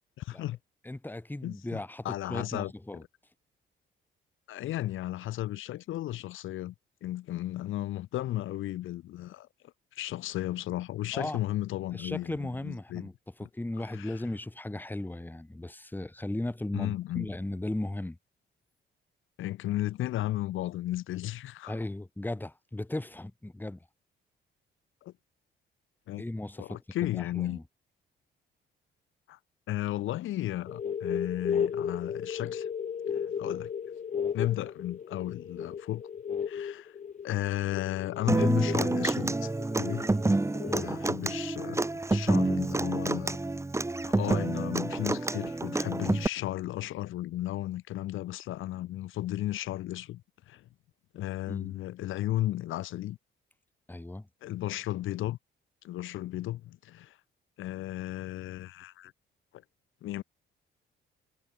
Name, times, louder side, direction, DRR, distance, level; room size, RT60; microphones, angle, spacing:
voice 1, 0.2-0.6 1.4-2.7 4.5-6.7 7.0-9.5 9.9-13.1 13.9-14.1 16.7-17.3 19.4-21.8 25.0-25.1 26.1-26.2 26.6-27.6 29.3-29.4 29.7-32.7 33.1-33.7 34.3-36.0 36.5-37.0 37.2-39.5 39.8-40.0 40.7-43.4 44.1-50.2 50.5-50.7 51.1-53.2 54.4-55.4 55.8-57.2 57.6-59.1 60.0-60.2, left 14 dB, 80° left, 1.8 m, -34 dB
voice 2, 0.8-3.0 11.1-11.4 11.9-13.1 13.4-18.2 21.7-23.8 26.2-26.8 27.1-27.6 40.1-40.3 40.7-40.9 51.5-51.7 53.9-54.3, left 1 dB, 10° left, 2.3 m, -36 dB
sound 1, 30.7-40.9, left 7 dB, 40° left, 0.8 m, -34 dB
Human voice / Acoustic guitar, 38.3-46.3, right 2 dB, 15° right, 1.5 m, -28 dB
cardioid pair, 90°, 20 cm